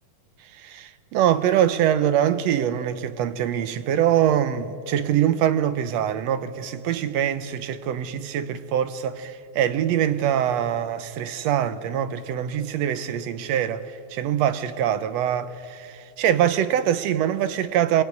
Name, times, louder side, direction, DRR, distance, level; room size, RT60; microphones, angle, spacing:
voice 1, 0.6-18.0, right 10 dB, 70° right, 1.7 m, -24 dB
26.0 x 20.0 x 9.5 m
omnidirectional pair, 3.6 m